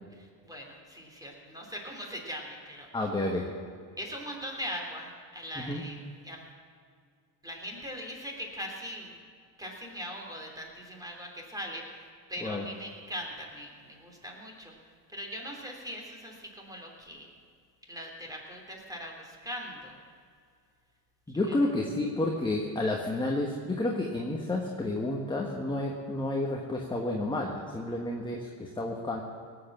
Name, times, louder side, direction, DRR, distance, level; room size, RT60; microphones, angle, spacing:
voice 1, 0.1-2.9 4.0-6.0 6.2-6.5 7.4-9.2 9.6-17.3 17.9-20.0 21.3-21.6, equal, 5° right, 0 dB, 3.3 m, -41 dB
voice 2, 2.9-3.5 5.6-5.8 12.4-12.6 21.3-29.2, left 2 dB, 10° left, 0 dB, 1.5 m, -30 dB
18.0 x 8.2 x 7.4 m, 2.1 s
supercardioid pair, 105°, 49 cm